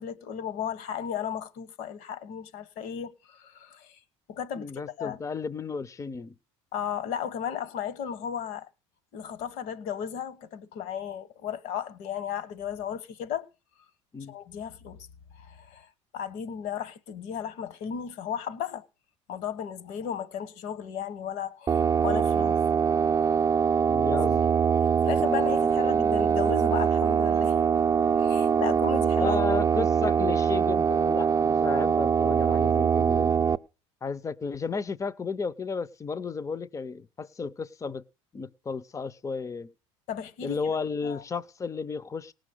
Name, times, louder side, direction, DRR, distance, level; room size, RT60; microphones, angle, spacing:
voice 1, 0.0-4.0 4.3-4.7 5.0-5.2 6.7-8.7 9.1-13.5 14.3-15.1 15.3-18.9 19.3-22.6 23.1-23.4 24.1-24.2 25.0-27.8 28.2-29.4 40.1-40.7 41.0-41.2, left 8 dB, 65° left, 1.3 m, -35 dB
voice 2, 4.6-6.3 14.1-14.3 22.4-22.5 23.9-24.5 29.2-33.4 34.0-38.0 38.3-39.7 40.4-42.3, left 5 dB, 20° left, 0.6 m, -33 dB
sound 1, 21.7-33.6, right 7 dB, 25° right, 0.6 m, -23 dB
18.0 x 6.3 x 6.4 m
hypercardioid pair, 80°, 15 cm